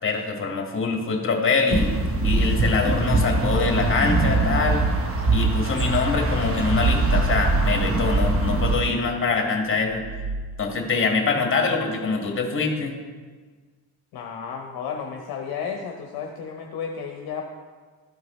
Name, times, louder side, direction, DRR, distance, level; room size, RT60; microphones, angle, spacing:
voice 1, 0.0-1.9 2.2-4.8 5.3-10.0 10.6-12.9, left 4 dB, 25° left, 1 dB, 1.8 m, -24 dB
sound 1, 1.7-8.8, right 2 dB, 30° right, 1.1 m, -22 dB
sound 2, 9.8-10.8, right 3 dB, 60° right, 0.7 m, -35 dB
voice 2, 14.1-17.4, left 6 dB, 50° left, 1 dB, 0.9 m, -32 dB
12.5 x 4.6 x 3.2 m, 1.5 s
supercardioid pair, 85°, 46 cm